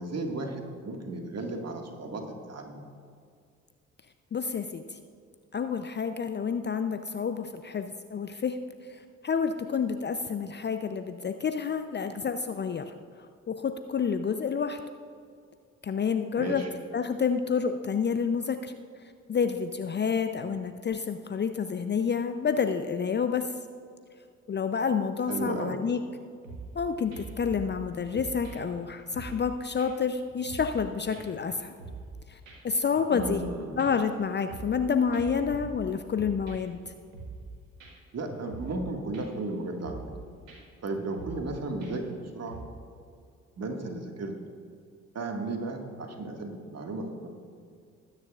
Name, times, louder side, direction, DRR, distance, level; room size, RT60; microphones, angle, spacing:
voice 1, 0.0-2.9 16.3-16.7 25.3-25.8 33.1-33.8 38.1-40.0 40.8-42.6 43.6-44.3 45.1-47.3, right 2 dB, 40° right, 3 dB, 1.9 m, -34 dB
voice 2, 4.3-4.8 5.5-8.6 9.2-12.8 13.5-14.8 15.8-16.6 16.9-18.7 19.3-23.5 24.5-26.0 26.7-31.7 32.3-32.4 32.6-33.4 33.8-36.8, left 6 dB, 25° left, 8 dB, 0.6 m, -29 dB
sound 1, 26.4-26.8 27.1-27.8 28.1-29.5 29.8-29.9 30.2-30.8 31.1-32.2 32.5-32.6 32.9-33.5 33.8-34.8 35.1-36.8 37.1-37.5 37.8-37.9 38.3-38.8 39.1-39.5 39.8-40.2 40.5-40.6 40.9-41.5 41.8-42.1 42.5-42.6, right 3 dB, 85° right, 1.5 m, -43 dB
20.5 x 9.8 x 2.4 m, 2.2 s
figure-of-eight pair, 45°, 39 cm